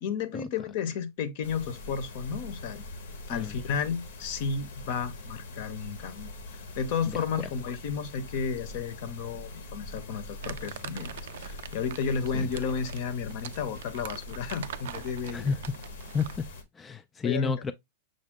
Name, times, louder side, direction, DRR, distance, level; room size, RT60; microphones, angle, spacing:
voice 1, 0.0-2.8 3.3-15.5 17.2-17.5, left 6 dB, 60° left, 0.8 m, -33 dB
sound 1, 1.4-16.6, left 2 dB, 80° left, 1.0 m, -43 dB
Crumpling crinkling, 10.4-16.5, right 10 dB, 75° right, 0.3 m, -43 dB
voice 2, 16.8-17.7, left 5 dB, 15° left, 0.3 m, -30 dB
6.4 x 2.1 x 3.6 m
hypercardioid pair, 130°, 0 cm